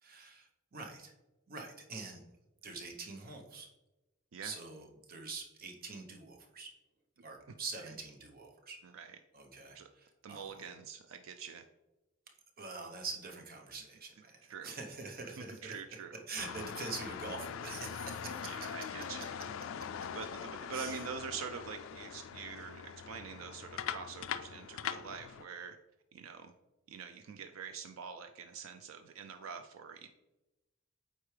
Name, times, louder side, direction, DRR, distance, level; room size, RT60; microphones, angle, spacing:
voice 1, 0.0-1.1 1.5-2.2 2.6-3.7 4.4-6.7 7.2-8.8 9.3-10.6 12.6-15.7 16.3-18.7 20.7-21.0, right 4 dB, 50° right, 2 dB, 1.0 m, -45 dB
voice 2, 8.8-9.2 9.7-9.9 10.2-11.7 14.5-14.7 15.4-16.1 18.4-19.3 20.1-25.8 26.1-26.5 26.9-30.1, right 6 dB, 90° right, 7 dB, 0.4 m, -45 dB
sound 1, 16.4-25.4, left 8 dB, 70° left, 0.3 m, -42 dB
8.1 x 4.4 x 3.3 m, 1.0 s
head